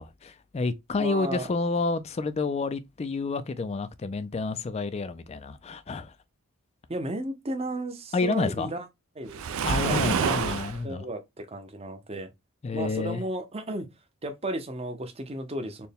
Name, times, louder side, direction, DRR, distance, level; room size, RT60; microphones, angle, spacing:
voice 1, 0.0-6.1 8.1-8.7 9.6-11.1 12.6-13.2, left 3 dB, 30° left, 0.3 m, -29 dB
voice 2, 1.0-1.5 6.9-8.9 9.2-10.6 10.8-12.3 12.7-13.9 14.2-15.9, right 1 dB, 25° right, 0.6 m, -34 dB
Waves surf, 9.3-10.8, right 6 dB, 65° right, 0.4 m, -27 dB
4.3 x 2.2 x 3.4 m
head